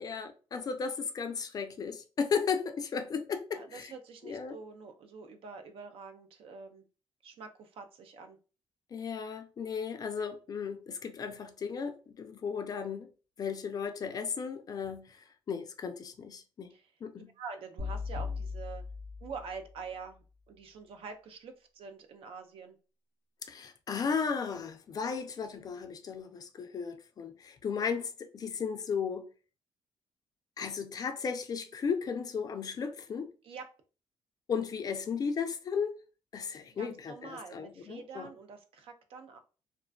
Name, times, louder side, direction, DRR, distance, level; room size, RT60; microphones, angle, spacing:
voice 1, 0.0-3.9 4.2-4.6 8.9-13.1 13.4-16.7 17.0-17.3 23.4-29.3 30.6-33.3 34.5-36.0 36.3-38.3, left 6 dB, 40° left, 0.3 m, -35 dB
voice 2, 3.5-6.9 7.2-8.4 16.7-16.9 17.4-18.8 19.2-22.8 33.4-33.7 36.7-39.4, right 5 dB, 65° right, 0.4 m, -46 dB
sound 1, 17.8-19.9, left 5 dB, 50° right, 0.8 m, -38 dB
2.4 x 2.2 x 2.2 m
cardioid pair, 120°, 10 cm